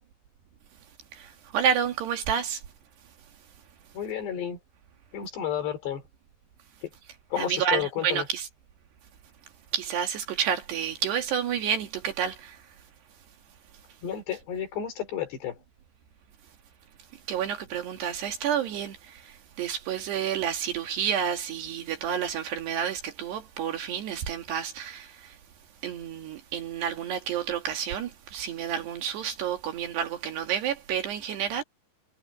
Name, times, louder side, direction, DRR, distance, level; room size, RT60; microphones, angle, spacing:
voice 1, 1.1-2.6 7.3-8.5 9.7-12.6 17.3-25.4 25.8-31.6, right 8 dB, 65° right, 3.7 m, -30 dB
voice 2, 3.9-4.6 5.1-6.0 6.8-6.9 7.3-8.3 14.0-15.6, left 9 dB, 60° left, 5.8 m, -31 dB
omnidirectional pair, 5.6 m